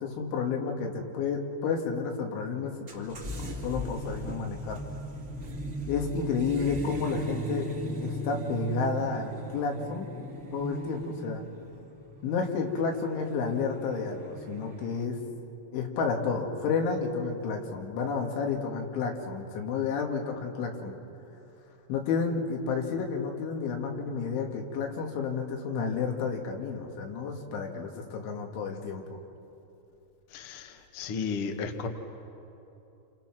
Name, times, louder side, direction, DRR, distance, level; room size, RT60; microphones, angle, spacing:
voice 1, 0.0-3.2 3.6-4.8 5.9-7.7 8.0-10.1 10.5-11.4 12.2-15.2 15.7-20.9 21.9-29.0, left 5 dB, 90° left, 2 dB, 4.6 m, -31 dB
sound 1, 2.9-15.0, right 1 dB, 35° right, 1.3 m, -38 dB
voice 2, 30.3-31.9, left 5 dB, 70° left, 4 dB, 1.3 m, -34 dB
29.5 x 29.0 x 6.1 m, 2.9 s
omnidirectional pair, 5.3 m